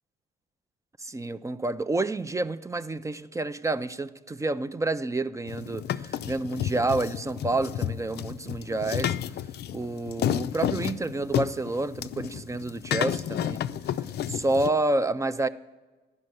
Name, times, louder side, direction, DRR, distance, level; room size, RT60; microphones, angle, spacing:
voice 1, 1.0-9.2 9.7-13.6 14.3-15.5, right 2 dB, 15° right, 0.3 m, -29 dB
sound 1, 5.5-14.7, left 10 dB, 55° left, 0.4 m, -31 dB
11.0 x 5.4 x 7.7 m
cardioid pair, 90°, 20 cm